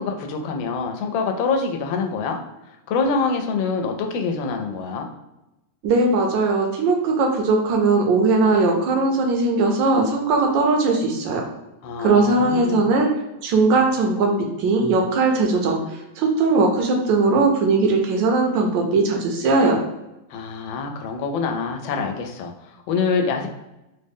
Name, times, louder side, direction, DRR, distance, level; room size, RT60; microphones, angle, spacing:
voice 1, 0.0-2.4 2.9-5.1 11.8-12.9 20.3-23.5, left 4 dB, 90° left, 4 dB, 1.3 m, -25 dB
voice 2, 5.8-11.5 12.0-13.1 13.4-15.8 16.2-19.8, right 3 dB, 75° right, 2 dB, 1.3 m, -19 dB
3.7 x 2.0 x 3.5 m, 0.94 s
omnidirectional pair, 2.1 m